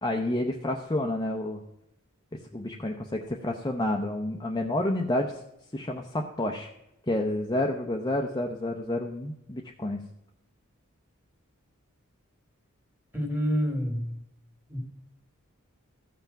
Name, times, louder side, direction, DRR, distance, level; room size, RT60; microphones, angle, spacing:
voice 1, 0.0-1.6 2.5-5.3 5.7-6.7 7.1-10.0, left 1 dB, 20° left, 1 dB, 0.7 m, -29 dB
voice 2, 13.1-14.1 14.7-14.8, equal, 10° right, 2 dB, 2.3 m, -28 dB
14.5 x 5.7 x 5.8 m, 0.86 s
head